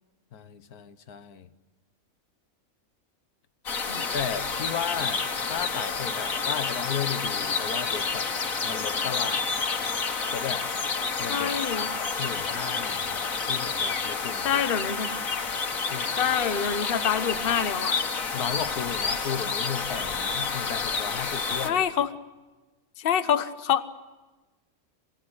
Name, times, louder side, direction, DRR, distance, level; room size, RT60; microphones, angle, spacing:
voice 1, 0.3-1.5 4.1-8.3 8.6-9.5 10.3-10.6 11.2-14.6 15.9-16.1 18.3-21.8, left 8 dB, 85° left, 12 dB, 1.6 m, -35 dB
sound 1, 3.7-21.7, left 5 dB, 65° left, 2.0 m, -29 dB
voice 2, 11.3-11.9 14.4-15.1 16.2-18.0 21.6-22.1 23.0-23.9, left 8 dB, 45° left, 10 dB, 1.0 m, -26 dB
27.0 x 16.5 x 9.7 m, 1.2 s
omnidirectional pair, 1.6 m